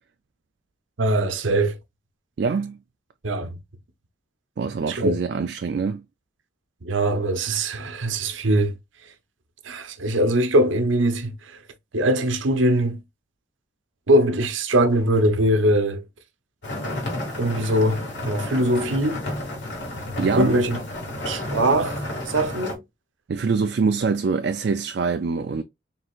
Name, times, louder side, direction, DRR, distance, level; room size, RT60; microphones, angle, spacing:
voice 1, 1.0-1.8 3.2-3.6 4.9-5.2 6.8-8.7 9.6-11.6 11.9-13.0 14.1-16.0 17.4-19.2 20.4-20.8 21.2-22.8, right 1 dB, 85° right, 0.8 m, -22 dB
voice 2, 2.4-2.8 4.6-6.0 20.2-20.6 23.3-25.6, right 5 dB, 60° right, 0.4 m, -24 dB
sound 1, 16.6-22.8, left 1 dB, 70° left, 2.3 m, -31 dB
4.5 x 3.6 x 2.4 m
head